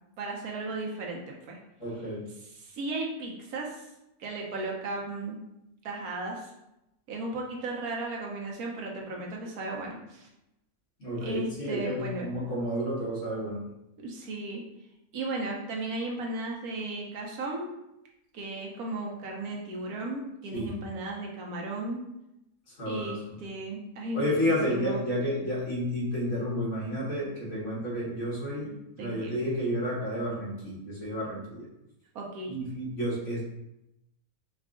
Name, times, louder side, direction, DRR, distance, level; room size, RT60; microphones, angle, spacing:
voice 1, 0.2-1.2 1.5-1.6 2.4-3.9 4.2-5.4 5.8-6.5 7.1-10.3 11.2-12.3 14.0-14.6 15.1-17.7 18.3-22.0 22.8-25.0 29.0-29.4 32.1-32.5, right 2 dB, 90° right, -1 dB, 1.3 m, -35 dB
voice 2, 1.8-2.3 11.0-13.6 20.5-20.7 22.7-23.2 24.1-31.7 32.5-33.4, equal, 55° left, -7 dB, 1.8 m, -31 dB
4.5 x 2.4 x 3.6 m, 0.87 s
omnidirectional pair, 1.5 m